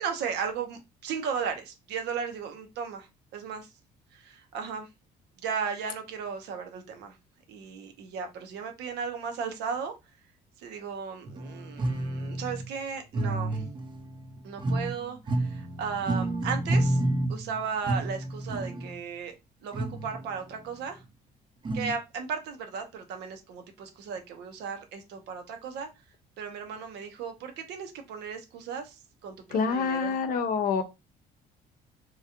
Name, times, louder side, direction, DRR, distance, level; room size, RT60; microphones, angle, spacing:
voice 1, 0.0-3.7 4.1-4.9 5.4-7.1 7.5-9.9 10.6-13.6 14.4-17.0 17.3-19.3 19.6-21.0 21.7-25.9 26.4-30.2, right 6 dB, 80° right, 0.8 m, -35 dB
sound 1, 11.3-12.7 13.1-15.0 15.3-19.0 19.7-20.5 21.6-21.9, right 1 dB, 30° right, 0.6 m, -30 dB
voice 2, 29.5-30.8, left 5 dB, 55° left, 0.6 m, -26 dB
2.9 x 2.4 x 2.8 m
cardioid pair, 110°, 17 cm